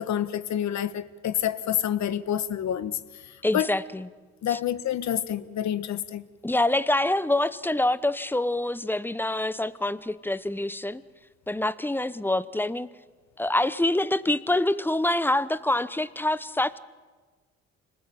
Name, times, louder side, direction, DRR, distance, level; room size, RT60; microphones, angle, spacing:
voice 1, 0.0-2.9 3.5-3.7 4.4-6.2, left 10 dB, 65° left, 1.2 m, -28 dB
voice 2, 3.4-4.1 4.5-4.6 6.4-11.0 11.5-12.9 13.4-16.8, left 1 dB, 5° left, 0.9 m, -26 dB
26.0 x 20.0 x 9.1 m
cardioid pair, 90°, 30 cm